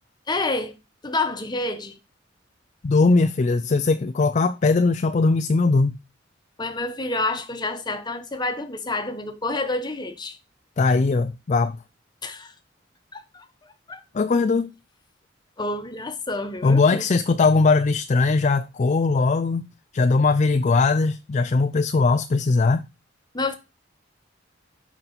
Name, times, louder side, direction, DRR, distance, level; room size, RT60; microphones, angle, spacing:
voice 1, 0.3-0.7 1.0-1.9 6.6-10.4 12.2-12.5 13.1-13.5 13.9-14.0 15.6-17.0 23.3-23.6, left 2 dB, 25° left, 1.1 m, -28 dB
voice 2, 2.8-6.0 10.8-11.8 14.1-14.7 16.6-19.7 19.9-22.8, left 3 dB, 40° left, 0.4 m, -20 dB
6.7 x 5.6 x 4.0 m
head